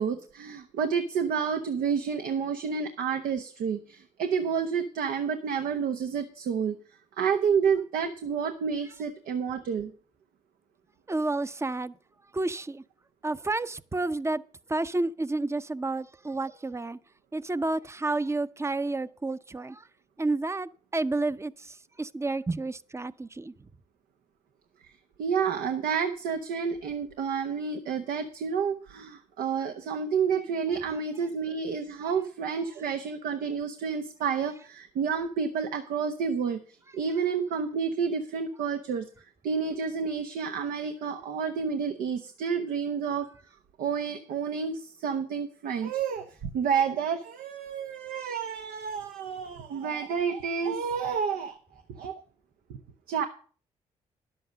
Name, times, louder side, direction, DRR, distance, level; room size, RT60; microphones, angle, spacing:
voice 1, 0.0-6.7 7.2-9.9 24.8-36.6 36.9-39.1 39.4-43.3 43.8-51.6 51.9-52.2 52.7-52.8 53.1-53.3, right 6 dB, 80° right, 0.9 m, -30 dB
voice 2, 11.1-12.0 12.3-12.8 13.2-14.4 14.7-17.0 17.3-19.9 20.2-23.7 32.0-32.2, right 2 dB, 20° right, 0.6 m, -30 dB
11.0 x 7.8 x 6.3 m
supercardioid pair, 55°, 14 cm